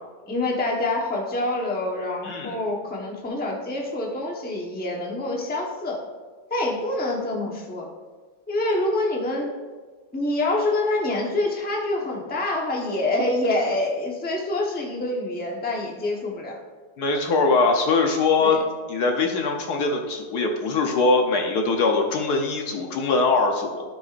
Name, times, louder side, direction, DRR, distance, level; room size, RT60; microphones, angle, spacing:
voice 1, 0.2-6.0 6.5-7.9 8.5-9.5 10.1-16.6 18.4-18.6, left 2 dB, 5° left, -1 dB, 0.8 m, -26 dB
voice 2, 2.2-2.6 17.0-18.6 18.9-23.8, left 3 dB, 65° left, 2 dB, 1.4 m, -22 dB
12.5 x 6.3 x 2.5 m, 1.4 s
omnidirectional pair, 1.9 m